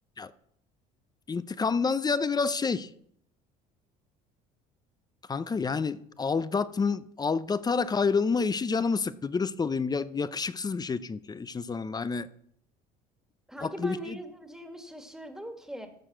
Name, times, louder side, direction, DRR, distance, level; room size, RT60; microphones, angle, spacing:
voice 1, 1.3-2.9 5.3-12.3 13.6-14.2, left 5 dB, 20° left, 0.6 m, -28 dB
voice 2, 13.5-15.9, right 1 dB, 5° right, 1.8 m, -41 dB
14.0 x 4.7 x 6.6 m
supercardioid pair, 85°, 18 cm